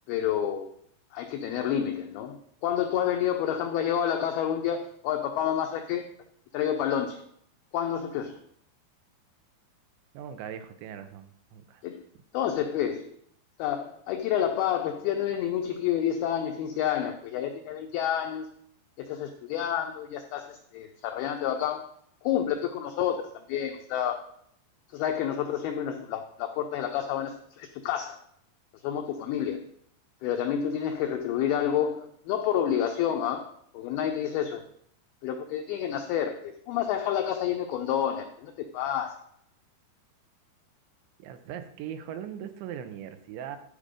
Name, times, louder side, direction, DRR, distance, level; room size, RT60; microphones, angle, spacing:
voice 1, 0.1-0.7 1.1-6.1 6.5-7.2 7.7-8.4 11.8-12.0 12.3-13.1 13.6-18.5 19.0-21.9 22.2-24.2 24.9-28.2 28.8-29.7 30.2-34.7 35.2-39.2, left 9 dB, 90° left, 5 dB, 2.2 m, -29 dB
voice 2, 10.1-11.8 41.2-43.6, right 9 dB, 80° right, 9 dB, 3.0 m, -40 dB
12.0 x 5.2 x 5.0 m, 0.67 s
omnidirectional pair, 5.2 m